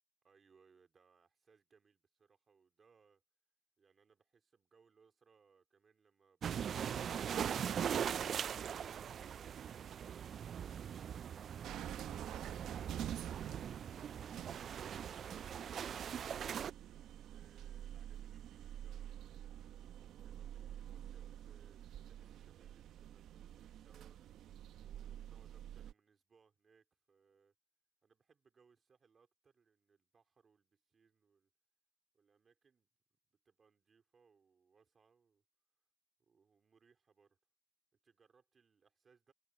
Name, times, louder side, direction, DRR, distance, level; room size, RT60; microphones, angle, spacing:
voice 1, 0.2-3.2 3.8-8.3 17.3-19.5 19.9-24.2 24.8-27.5 28.0-31.5 32.1-35.4 36.3-37.4 38.0-39.3, right 5 dB, 45° right, 3.6 m, -71 dB
sound 1, 6.4-16.7, right 8 dB, 60° right, 0.3 m, -41 dB
sound 2, 11.6-25.9, right 11 dB, 80° right, 0.8 m, -49 dB
cardioid pair, 90°, 0 cm